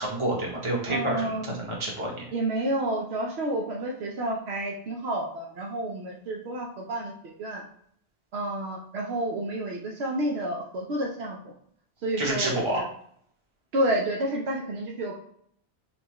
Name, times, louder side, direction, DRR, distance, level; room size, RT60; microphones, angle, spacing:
voice 1, 0.0-2.2 12.2-12.8, right 1 dB, 25° right, -3 dB, 1.0 m, -29 dB
voice 2, 0.9-1.5 2.3-7.1 7.4-7.6 8.3-11.5 12.0-12.8 13.7-15.2, right 1 dB, 65° right, -1 dB, 0.9 m, -30 dB
5.5 x 2.2 x 3.0 m, 0.66 s
omnidirectional pair, 1.2 m